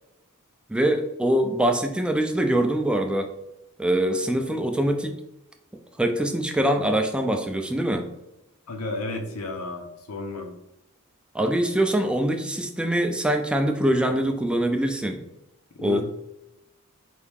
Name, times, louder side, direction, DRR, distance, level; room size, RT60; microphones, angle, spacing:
voice 1, 0.7-3.3 3.8-5.2 6.0-8.1 11.3-15.2 15.8-16.0, right 1 dB, 5° right, 5 dB, 0.3 m, -23 dB
voice 2, 8.7-10.5 15.8-16.0, left 2 dB, 90° left, 4 dB, 0.8 m, -32 dB
4.6 x 2.7 x 3.5 m, 0.91 s
head